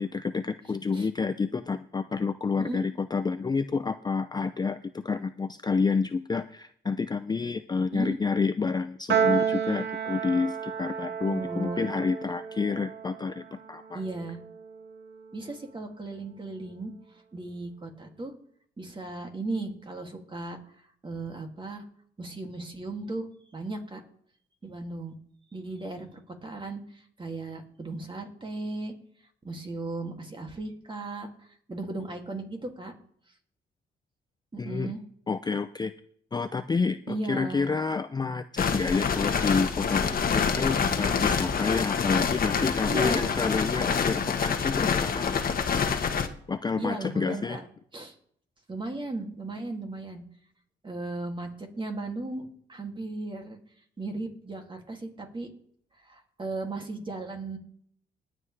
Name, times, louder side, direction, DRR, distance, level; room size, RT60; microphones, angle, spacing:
voice 1, 0.0-14.0 34.6-34.9 35.3-35.9 36.3-45.5 46.5-47.6, left 4 dB, 20° left, 10 dB, 0.4 m, -29 dB
voice 2, 7.9-8.2 11.2-11.8 13.9-14.4 15.3-16.9 17.3-18.3 18.8-20.6 21.0-21.8 22.2-24.0 24.6-25.2 25.5-28.9 29.4-32.9 34.5-35.0 37.1-37.7 42.0-42.2 42.6-43.3 46.8-47.6 47.9-48.1 48.7-50.2 50.8-53.6 54.0-55.5 56.0-57.6, right 2 dB, 25° right, 3 dB, 2.4 m, -36 dB
Piano, 9.1-15.6, right 7 dB, 65° right, 1.6 m, -31 dB
sound 1, 38.6-46.3, left 6 dB, 45° left, 1.2 m, -26 dB
20.5 x 7.7 x 3.3 m, 0.64 s
cardioid pair, 90°, 20 cm